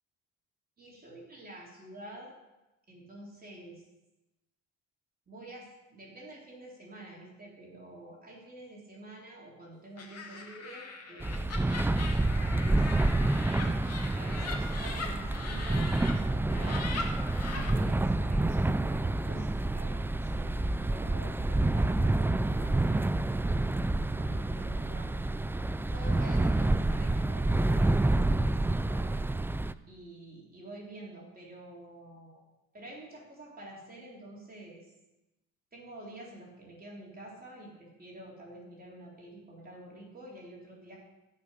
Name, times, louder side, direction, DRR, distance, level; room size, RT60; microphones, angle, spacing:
voice 1, 0.8-2.3 2.9-3.8 5.3-11.5 12.4-12.9 13.6-13.8 14.1-16.8 17.5-23.8 24.1-25.2 25.9-29.2 29.9-32.4 32.7-34.9 35.7-41.0, right 1 dB, 30° right, -4 dB, 3.6 m, -48 dB
Laughter, 10.0-16.1 16.5-17.7, left 4 dB, 55° left, 2.3 m, -40 dB
sound 1, 11.2-29.7, right 2 dB, 5° right, 0.4 m, -28 dB
15.5 x 5.7 x 6.5 m, 1.0 s
cardioid pair, 90°, 30 cm